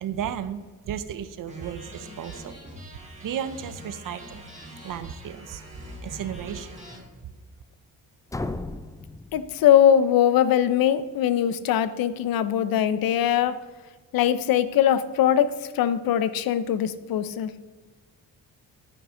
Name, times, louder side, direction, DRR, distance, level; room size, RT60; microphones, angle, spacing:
voice 1, 0.0-2.6 3.2-4.5 4.8-5.6 6.0-6.8, right 9 dB, 65° right, 12 dB, 0.8 m, -34 dB
sound 1, 1.5-7.0, equal, 20° right, 3.0 m, -43 dB
sound 2, 8.3-10.2, left 2 dB, 10° left, 0.5 m, -35 dB
voice 2, 9.3-13.5 14.1-17.5, left 10 dB, 80° left, 14 dB, 0.7 m, -21 dB
9.9 x 9.3 x 3.8 m, 1.3 s
cardioid pair, 110°, 34 cm